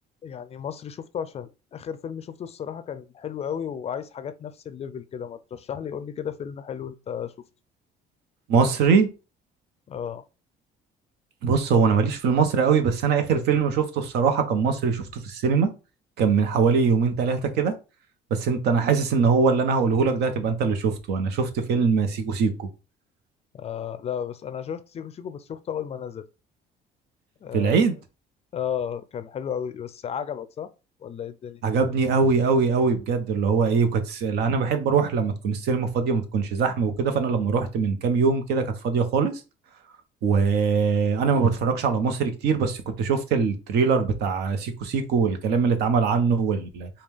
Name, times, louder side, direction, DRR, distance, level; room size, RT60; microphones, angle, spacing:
voice 1, 0.2-7.3 9.9-10.2 23.5-26.3 27.4-27.8 28.5-30.7 31.0-31.6, left 8 dB, 40° left, 0.4 m, -33 dB
voice 2, 8.5-9.1 11.4-15.7 16.2-17.7 18.3-22.7 27.5-28.0 31.6-39.3 40.2-46.9, right 5 dB, 80° right, 0.8 m, -22 dB
4.9 x 2.3 x 3.4 m
cardioid pair, 110°, 17 cm